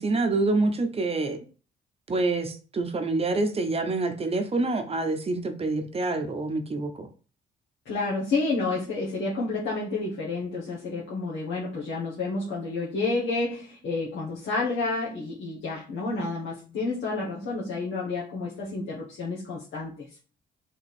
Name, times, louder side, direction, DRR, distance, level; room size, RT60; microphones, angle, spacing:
voice 1, 0.0-1.4 2.1-7.1, right 3 dB, 30° right, 6 dB, 0.9 m, -26 dB
voice 2, 7.8-20.1, left 3 dB, 70° left, -6 dB, 1.4 m, -30 dB
3.7 x 2.9 x 4.2 m, 0.36 s
cardioid pair, 90°, 20 cm